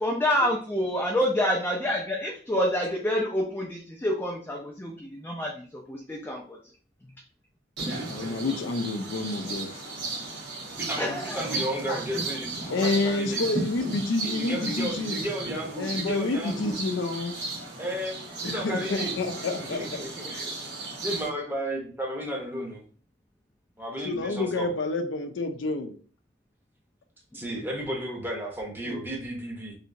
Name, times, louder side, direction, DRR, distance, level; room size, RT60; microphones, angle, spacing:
voice 1, 0.0-6.6 11.0-11.5 11.9-12.0, equal, 10° left, -2 dB, 0.4 m, -28 dB
sound 1, 7.8-21.3, right 2 dB, 65° right, 1.3 m, -35 dB
voice 2, 8.1-9.7 12.7-15.2 15.8-17.4 18.4-20.0 20.3-20.4 24.0-25.9 28.9-29.0, left 3 dB, 90° left, 7 dB, 0.5 m, -29 dB
voice 3, 10.8-13.4 14.1-16.7 17.8-19.1 19.7-20.5 21.0-22.8 23.8-24.7 27.3-29.7, right 1 dB, 10° right, -1 dB, 0.8 m, -33 dB
3.2 x 2.8 x 2.6 m, 0.42 s
head